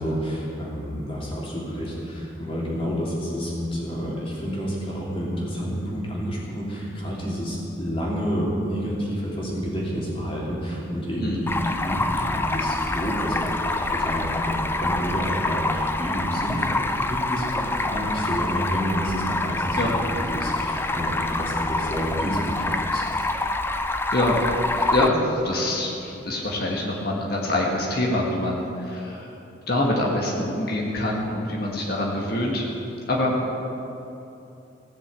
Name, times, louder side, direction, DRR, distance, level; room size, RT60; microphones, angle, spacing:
voice 1, 0.0-23.0, equal, 30° left, -4 dB, 3.0 m, -29 dB
Stream, 11.5-25.1, left 2 dB, 10° left, 0.5 m, -26 dB
voice 2, 23.9-24.4 24.7-29.3 29.7-32.6 33.1-33.3, left 1 dB, 50° left, -2 dB, 1.8 m, -25 dB
16.0 x 7.0 x 8.4 m, 2.9 s
head